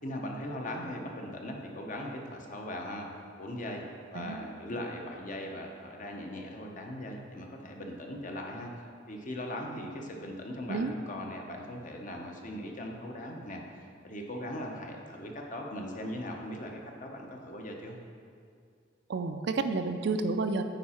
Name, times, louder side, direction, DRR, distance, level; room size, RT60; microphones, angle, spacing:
voice 1, 0.0-3.1 3.4-3.8 4.1-8.7 9.1-18.0, left 1 dB, 40° left, 1 dB, 0.8 m, -39 dB
voice 2, 19.1-20.6, right 3 dB, 60° right, 8 dB, 0.4 m, -30 dB
9.1 x 4.7 x 4.3 m, 2.3 s
head